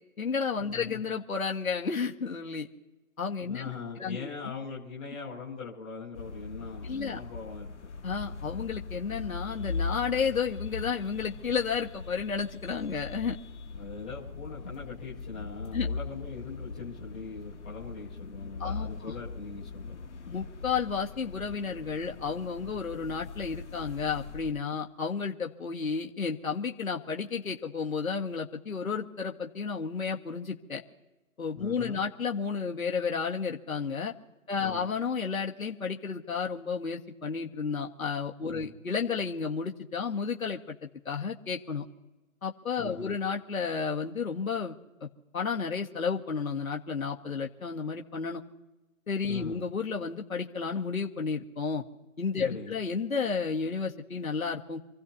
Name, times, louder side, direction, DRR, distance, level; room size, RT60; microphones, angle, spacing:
voice 1, 0.2-2.7 3.2-3.6 4.0-4.3 6.8-7.2 8.0-13.4 15.7-15.9 18.6-19.1 20.3-30.8 31.4-34.1 34.5-41.8 42.4-44.7 45.0-45.1 45.3-48.4 49.1-51.8 52.2-54.8, left 5 dB, 75° left, 1 dB, 1.8 m, -32 dB
voice 2, 3.5-7.9 13.7-20.0 31.5-32.0 34.5-34.8 38.5-38.7 42.8-43.1 49.2-49.6 52.4-52.8, left 5 dB, 5° left, -9 dB, 0.8 m, -41 dB
sound 1, 6.1-24.5, left 4 dB, 55° left, 1.4 m, -40 dB
28.0 x 16.0 x 2.8 m, 1.1 s
hypercardioid pair, 165°, 42 cm